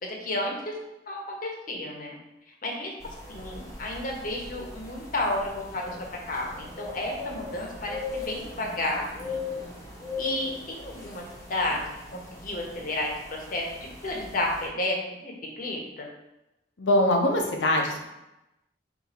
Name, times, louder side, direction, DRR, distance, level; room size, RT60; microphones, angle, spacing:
voice 1, 0.0-0.8 1.1-2.2 2.6-6.0 6.3-9.4 10.2-11.8 12.1-16.1, left 1 dB, 50° left, 0 dB, 0.9 m, -32 dB
sound 1, 3.0-14.7, left 3 dB, 20° left, 0.9 m, -39 dB
voice 2, 16.8-18.1, left 1 dB, 85° left, 1 dB, 0.8 m, -23 dB
4.0 x 2.6 x 4.1 m, 0.93 s
head